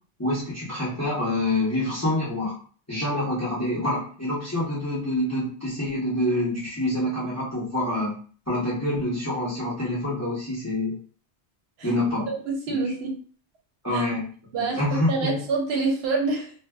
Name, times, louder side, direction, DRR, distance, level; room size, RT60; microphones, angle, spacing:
voice 1, 0.2-2.6 2.9-8.1 8.5-10.9 11.8-12.3 13.8-14.3 14.5-15.4, left 1 dB, 15° left, -7 dB, 0.6 m, -26 dB
voice 2, 12.5-13.2 13.9-14.0 14.5-14.8 15.1-16.5, right 3 dB, 70° right, 1 dB, 0.8 m, -26 dB
2.5 x 2.2 x 2.2 m, 0.43 s
omnidirectional pair, 1.2 m